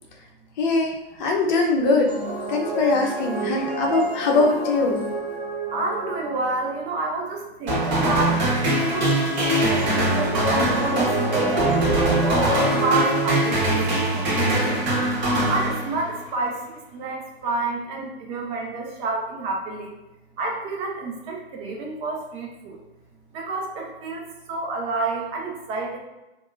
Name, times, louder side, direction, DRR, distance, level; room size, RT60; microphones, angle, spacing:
voice 1, 0.6-2.1 2.5-5.0, left 3 dB, 45° left, 1 dB, 0.7 m, -22 dB
sound 1, 1.8-6.9 9.4-13.5, right 2 dB, 70° right, 0.9 m, -30 dB
voice 2, 5.7-8.4 8.8-9.2 9.6-12.5 12.8-14.9 15.4-19.9 20.4-22.8 23.3-26.0, right 3 dB, 20° right, 0 dB, 0.3 m, -29 dB
sound 2, 7.7-16.2, right 1 dB, 45° right, 1.2 m, -22 dB
3.4 x 2.1 x 2.5 m, 1.0 s
figure-of-eight pair, 105°, 32 cm